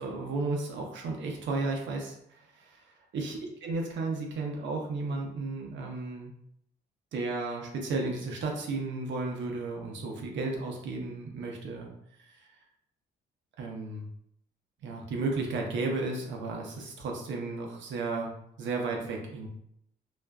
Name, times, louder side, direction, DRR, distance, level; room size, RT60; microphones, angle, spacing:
voice 1, 0.0-2.8 3.1-6.3 7.1-11.9 12.2-12.3 13.6-14.0 14.8-18.3 18.6-19.5, right 3 dB, 70° right, 1 dB, 0.6 m, -33 dB
2.4 x 2.2 x 2.2 m, 0.74 s
cardioid pair, 90°, 20 cm